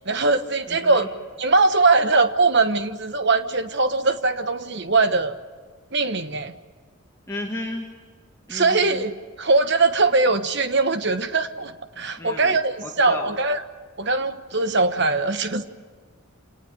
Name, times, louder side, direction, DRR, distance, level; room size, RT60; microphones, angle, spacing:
voice 1, 0.0-1.1 1.4-5.4 5.9-6.5 8.5-13.6 14.0-15.6, right 3 dB, 50° right, 10 dB, 1.2 m, -21 dB
voice 2, 0.7-1.1 7.3-7.9 8.5-9.0 12.2-12.6 12.8-13.3, left 1 dB, 15° left, -1 dB, 1.9 m, -33 dB
27.0 x 18.5 x 10.0 m, 1.5 s
head